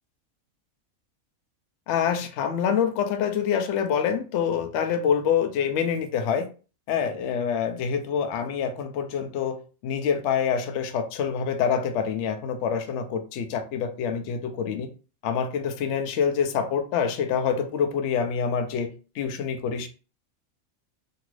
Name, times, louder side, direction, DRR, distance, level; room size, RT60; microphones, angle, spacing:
voice 1, 1.9-6.5 6.9-9.6 9.8-14.9 15.2-19.9, left 7 dB, 65° left, 7 dB, 0.8 m, -26 dB
2.9 x 2.4 x 3.1 m, 0.35 s
omnidirectional pair, 1.5 m